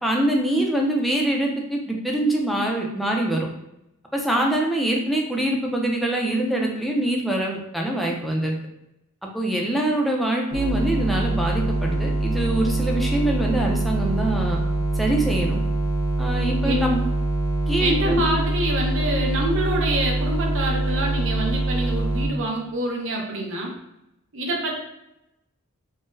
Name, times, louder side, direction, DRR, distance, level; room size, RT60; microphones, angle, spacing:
voice 1, 0.0-3.5 4.1-8.6 9.3-14.6 15.0-15.6 16.2-17.0 17.7-18.2, right 1 dB, ahead, -1 dB, 0.4 m, -24 dB
sound 1, 10.5-22.3, right 2 dB, 90° left, 0.6 m, -24 dB
voice 2, 17.8-23.7 24.3-24.8, right 1 dB, 65° right, 0 dB, 0.6 m, -26 dB
3.6 x 2.0 x 2.6 m, 0.87 s
head